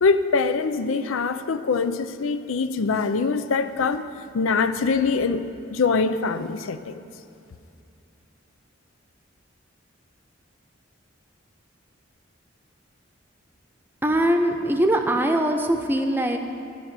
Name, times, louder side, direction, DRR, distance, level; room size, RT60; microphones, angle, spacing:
voice 1, 0.0-4.1 4.3-5.4 5.7-7.0, left 4 dB, 85° left, 10 dB, 0.5 m, -23 dB
voice 2, 14.0-16.4, right 1 dB, 10° right, 4 dB, 0.7 m, -22 dB
14.5 x 6.1 x 8.9 m, 2.7 s
head